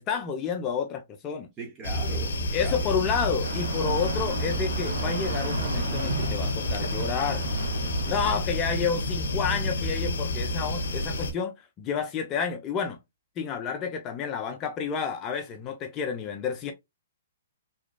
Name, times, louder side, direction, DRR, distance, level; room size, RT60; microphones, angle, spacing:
voice 1, 0.0-1.5 2.5-7.5 8.1-13.0 13.4-16.7, left 6 dB, 30° left, 0.4 m, -30 dB
voice 2, 1.6-2.9 8.2-8.3 16.6-16.7, right 3 dB, 20° right, 1.0 m, -40 dB
sound 1, 1.8-11.3, left 1 dB, 75° left, 0.6 m, -29 dB
sound 2, 3.4-8.4, right 6 dB, 70° right, 0.5 m, -36 dB
2.9 x 2.3 x 2.2 m
hypercardioid pair, 130°, 0 cm